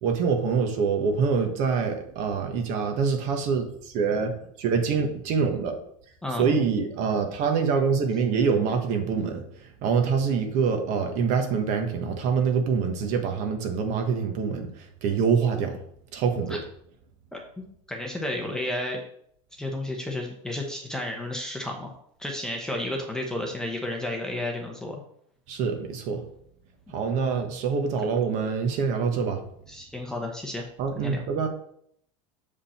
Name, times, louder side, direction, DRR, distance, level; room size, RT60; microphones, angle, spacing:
voice 1, 0.0-3.6 3.9-5.8 6.4-9.4 9.8-14.7 15.0-15.8 16.1-16.6 25.5-26.2 26.9-29.4 30.8-31.5, right 5 dB, 45° right, 5 dB, 1.3 m, -25 dB
voice 2, 17.3-19.0 19.6-21.9 22.2-25.0 26.9-27.5 29.7-30.6 30.9-31.2, left 1 dB, 5° left, 1 dB, 0.9 m, -32 dB
7.3 x 5.2 x 4.3 m, 0.67 s
supercardioid pair, 155°, 17 cm